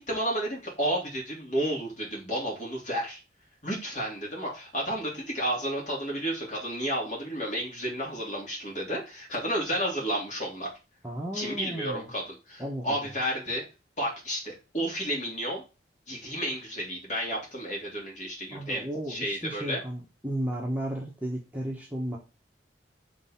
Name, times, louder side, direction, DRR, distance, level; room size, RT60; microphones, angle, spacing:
voice 1, 0.0-3.2 3.6-10.7 11.3-13.6 14.0-15.6 16.1-19.8, equal, 40° left, -3 dB, 3.0 m, -31 dB
voice 2, 11.0-12.1 12.6-13.2 18.5-22.2, right 1 dB, 10° right, -2 dB, 1.2 m, -34 dB
6.3 x 3.7 x 5.7 m, 0.30 s
head